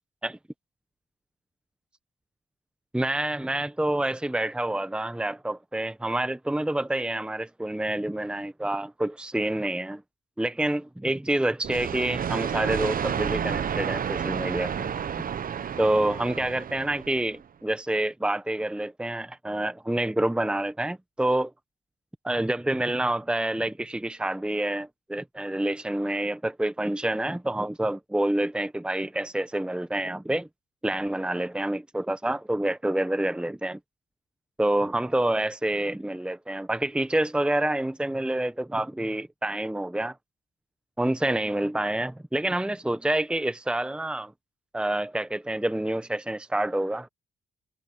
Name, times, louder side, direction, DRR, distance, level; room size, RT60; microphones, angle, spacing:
voice 1, 2.9-10.0 10.4-14.9 15.8-21.5 22.2-30.5 30.8-33.8 34.6-40.2 41.0-44.3 44.7-47.1, right 1 dB, 5° right, 1.0 m, -27 dB
sound 1, 11.6-17.3, right 8 dB, 45° right, 0.9 m, -30 dB
cardioid pair, 90°, 20 cm